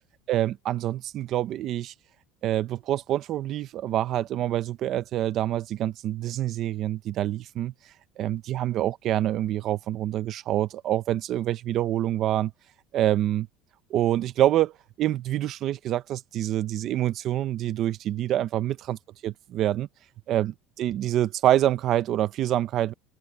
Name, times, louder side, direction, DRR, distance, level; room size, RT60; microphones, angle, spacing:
voice 1, 0.3-1.9 2.4-7.7 8.2-12.5 12.9-13.5 13.9-14.7 15.0-19.9 20.3-22.9, right 12 dB, 35° right, 0.7 m, -26 dB
cardioid pair, 170°, 0 cm